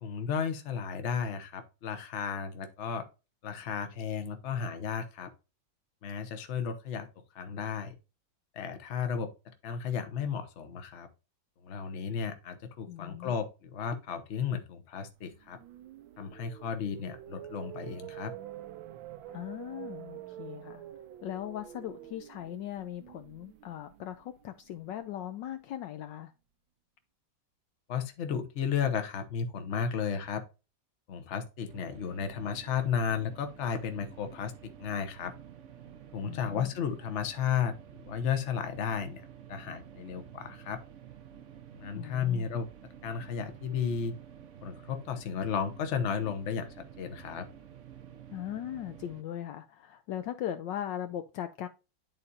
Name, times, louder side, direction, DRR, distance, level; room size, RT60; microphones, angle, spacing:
voice 1, 0.0-3.0 3.4-5.3 6.0-7.1 7.3-7.9 8.5-9.3 9.6-11.1 11.6-15.6 16.2-18.3 27.9-30.4 31.1-35.3 36.1-37.7 38.1-39.2 39.5-40.8 41.8-42.7 43.0-44.1 44.6-47.5, left 7 dB, 45° left, 1.0 m, -33 dB
voice 2, 12.9-13.3 19.3-20.8 21.2-26.3 36.3-36.7 41.9-42.5 48.3-51.7, left 11 dB, 75° left, 1.2 m, -39 dB
sound 1, 15.3-25.4, right 12 dB, 80° right, 1.3 m, -47 dB
sound 2, 31.7-49.2, right 9 dB, 60° right, 0.8 m, -51 dB
11.0 x 4.1 x 2.6 m
omnidirectional pair, 2.2 m